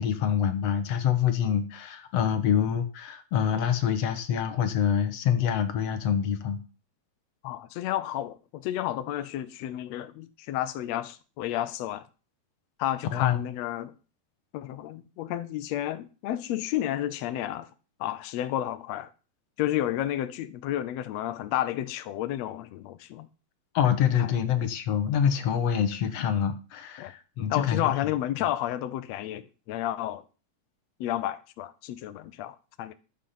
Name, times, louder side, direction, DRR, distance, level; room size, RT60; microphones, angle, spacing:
voice 1, 0.0-6.6 13.1-13.4 23.7-27.9, left 8 dB, 60° left, 2.1 m, -26 dB
voice 2, 7.4-12.1 12.8-13.9 14.5-17.7 18.0-19.1 19.6-23.3 24.2-24.3 27.0-27.1 27.5-30.2 31.0-32.9, left 13 dB, 85° left, 1.5 m, -31 dB
12.0 x 8.5 x 5.7 m
omnidirectional pair, 3.9 m